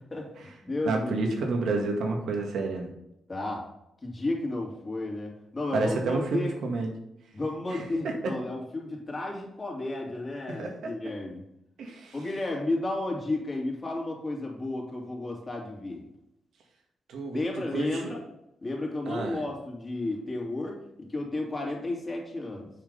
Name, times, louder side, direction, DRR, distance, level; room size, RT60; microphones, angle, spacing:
voice 1, 0.1-1.3 3.3-3.7 4.0-6.6 7.3-11.4 12.1-16.1 17.3-18.2 18.6-22.7, left 2 dB, 30° left, -1 dB, 2.7 m, -33 dB
voice 2, 0.9-2.9 5.7-6.9 7.7-8.1 10.5-10.9 11.8-12.2 17.1-17.4 17.7-18.1 19.1-19.4, right 3 dB, 80° right, 2 dB, 1.8 m, -30 dB
7.5 x 4.9 x 5.4 m, 0.82 s
cardioid pair, 85°, 0 cm